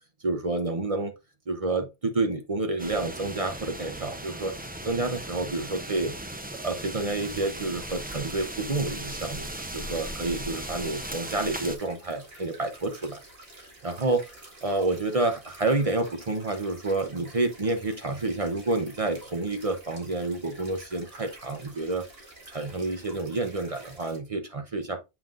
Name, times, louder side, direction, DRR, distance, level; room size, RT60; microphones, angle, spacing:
voice 1, 0.2-1.1 1.5-4.6 4.8-6.2 6.6-13.2 13.6-22.1 22.5-25.0, right 2 dB, 35° right, 0.8 m, -29 dB
sound 1, 2.8-11.8, right 1 dB, 10° right, 0.4 m, -37 dB
sound 2, 7.2-24.2, right 2 dB, 65° right, 2.1 m, -50 dB
7.1 x 5.7 x 2.5 m
omnidirectional pair, 1.1 m